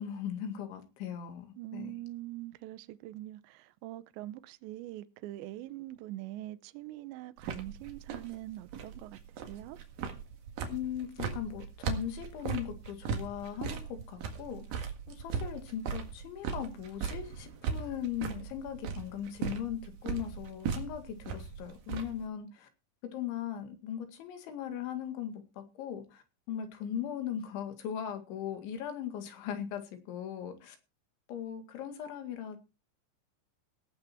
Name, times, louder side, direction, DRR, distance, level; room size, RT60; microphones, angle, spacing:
voice 1, 0.0-1.9 10.7-22.7 23.1-30.8 31.3-32.6, left 9 dB, 75° left, 4.4 m, -39 dB
voice 2, 1.6-9.2 9.5-9.8, right 16 dB, 80° right, 2.9 m, -43 dB
sound 1, 7.4-22.3, right 6 dB, 55° right, 3.0 m, -38 dB
18.0 x 7.9 x 4.5 m
omnidirectional pair, 5.5 m